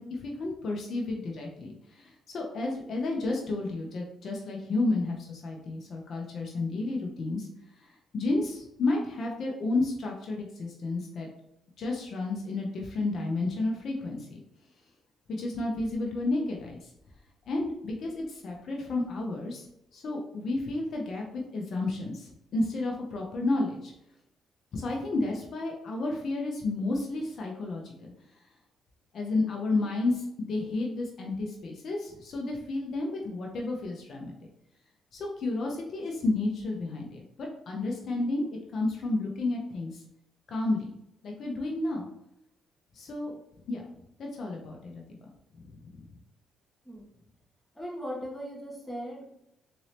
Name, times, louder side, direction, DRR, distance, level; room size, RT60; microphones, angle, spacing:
voice 1, 0.0-7.5 7.8-11.3 11.8-14.4 15.3-16.8 17.5-19.7 19.9-23.9 24.7-28.1 29.1-34.3 35.1-38.5 38.7-40.0 40.5-40.9 41.2-42.1 42.9-43.3 43.7-43.9 44.2-45.0 45.7-46.1, left 2 dB, 60° left, 0 dB, 0.7 m, -31 dB
voice 2, 47.7-49.2, equal, 10° left, -4 dB, 1.5 m, -38 dB
4.0 x 2.7 x 3.2 m, 0.80 s
cardioid pair, 90°, 0 cm